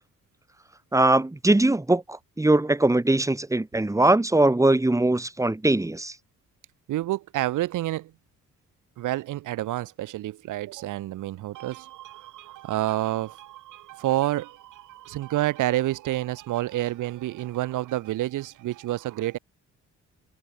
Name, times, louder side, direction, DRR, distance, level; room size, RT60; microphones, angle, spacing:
voice 1, 0.9-6.1, right 2 dB, 10° right, 2.2 m, -21 dB
voice 2, 6.9-8.1 9.0-19.4, right 15 dB, 85° right, 4.9 m, -29 dB
cardioid pair, 90°, 30 cm